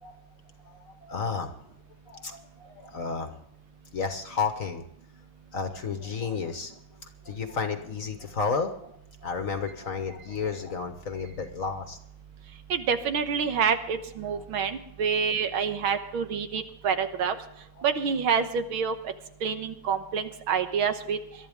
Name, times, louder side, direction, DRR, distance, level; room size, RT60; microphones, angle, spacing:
voice 1, 0.6-1.5 2.1-3.4 3.9-4.8 5.5-12.0 14.3-14.4 15.1-15.2 17.8-17.9 20.6-20.7, left 5 dB, 45° left, 7 dB, 1.3 m, -32 dB
voice 2, 12.7-17.4 17.8-19.0 19.4-21.2, right 6 dB, 80° right, 8 dB, 2.0 m, -27 dB
22.0 x 12.5 x 3.6 m, 0.74 s
omnidirectional pair, 2.3 m